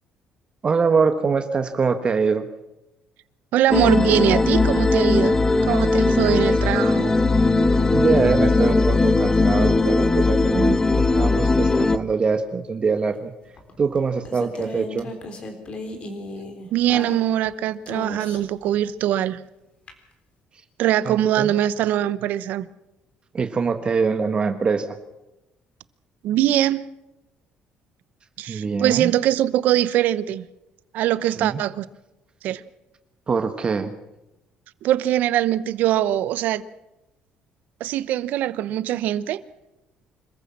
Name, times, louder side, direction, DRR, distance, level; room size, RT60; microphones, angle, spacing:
voice 1, 0.6-2.5 7.9-13.3 13.8-15.1 21.0-21.5 23.3-25.0 28.5-29.1 31.2-31.6 33.3-33.9, right 5 dB, 35° right, 8 dB, 1.3 m, -23 dB
voice 2, 3.5-7.1 16.7-19.4 20.8-22.7 26.2-26.9 28.4-30.5 30.9-31.8 32.4-32.6 34.8-36.6 37.8-39.4, right 12 dB, 75° right, 17 dB, 0.9 m, -22 dB
sound 1, 3.7-12.0, left 3 dB, 20° left, 1.1 m, -19 dB
sound 2, 13.6-17.5 17.9-18.6 19.9-20.0, left 2 dB, 40° left, 3.7 m, -35 dB
26.0 x 14.5 x 7.4 m, 0.97 s
cardioid pair, 105°, 3 cm